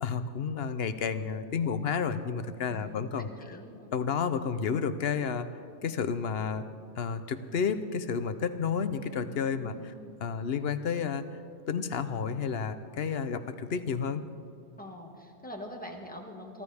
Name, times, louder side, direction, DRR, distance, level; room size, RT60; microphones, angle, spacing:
voice 1, 0.0-3.3 3.9-5.5 5.8-6.7 7.0-9.9 10.2-11.2 11.7-14.2, left 6 dB, 65° left, 11 dB, 1.0 m, -31 dB
voice 2, 2.7-3.9 9.5-10.1 14.8-16.6, left 1 dB, 10° left, 1 dB, 1.7 m, -44 dB
23.5 x 15.0 x 3.5 m, 2.3 s
omnidirectional pair, 1.2 m